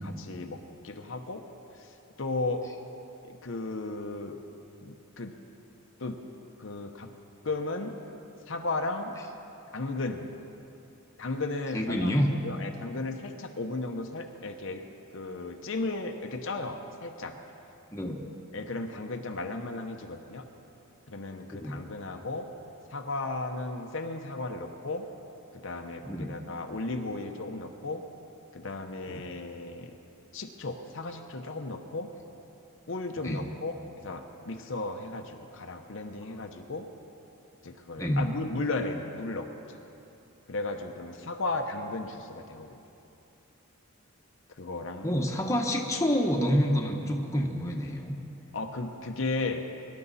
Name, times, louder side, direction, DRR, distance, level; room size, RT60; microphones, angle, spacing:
voice 1, 0.2-1.5 2.2-2.7 3.2-4.4 4.8-5.3 6.0-6.2 6.6-7.1 7.4-7.9 8.5-9.1 9.7-10.4 11.2-12.1 12.4-14.8 15.1-17.3 18.5-20.4 21.1-22.5 22.9-25.0 25.5-28.0 28.5-29.9 30.3-32.1 32.9-33.8 34.0-36.9 37.6-39.8 40.5-42.8 44.6-45.1 48.5-49.6, left 2 dB, 65° left, 4 dB, 0.9 m, -35 dB
voice 2, 11.7-12.3 17.9-18.3 21.5-21.8 26.0-26.4 29.1-29.2 33.2-33.5 38.0-38.3 45.0-48.1, equal, 15° left, 0 dB, 1.1 m, -28 dB
23.5 x 11.5 x 4.1 m, 2.9 s
head